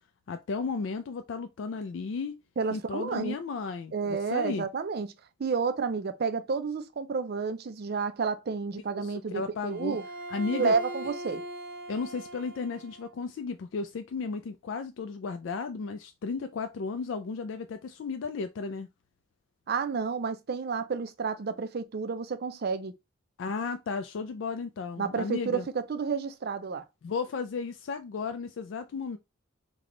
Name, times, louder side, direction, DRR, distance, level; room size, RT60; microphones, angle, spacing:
voice 1, 0.3-2.4 2.7-4.7 9.0-10.0 10.3-10.8 11.9-18.9 23.4-25.6 27.0-29.2, left 4 dB, 70° left, 0.3 m, -34 dB
voice 2, 2.6-3.4 3.9-5.1 5.4-10.0 10.5-11.4 19.7-22.9 25.0-26.8, right 5 dB, 50° right, 0.4 m, -30 dB
Bowed string instrument, 9.7-13.1, equal, 70° right, 1.3 m, -40 dB
3.4 x 2.2 x 3.7 m
head